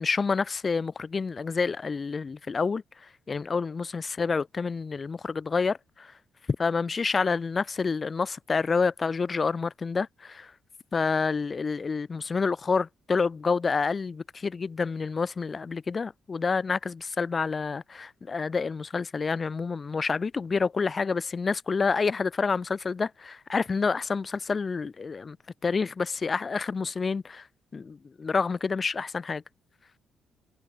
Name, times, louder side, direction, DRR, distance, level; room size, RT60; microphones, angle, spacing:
voice 1, 0.0-6.1 6.6-10.5 10.9-25.4 25.6-27.5 27.7-29.4, left 4 dB, 35° left, 3.1 m, -28 dB
cardioid pair, 90°, 0 cm